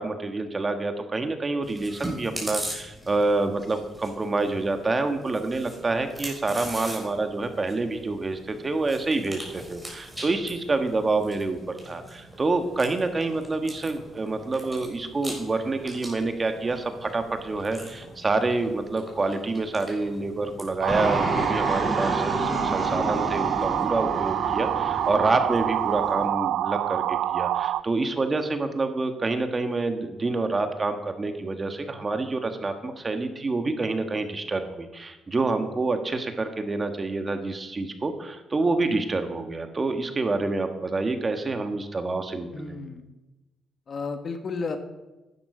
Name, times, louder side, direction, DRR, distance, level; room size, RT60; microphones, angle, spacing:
voice 1, 0.0-42.8, right 3 dB, 30° right, 7 dB, 1.5 m, -27 dB
Chewing mastication, 1.6-21.2, right 1 dB, 5° right, 4.7 m, -41 dB
sound 1, 20.8-27.8, right 12 dB, 85° right, 0.3 m, -26 dB
Fixed-wing aircraft airplane, 20.9-26.3, left 1 dB, 15° left, 2.7 m, -31 dB
voice 2, 42.5-43.0 43.9-44.8, left 4 dB, 45° left, 7 dB, 1.5 m, -32 dB
11.0 x 11.0 x 5.0 m, 1.0 s
cardioid pair, 90°, 0 cm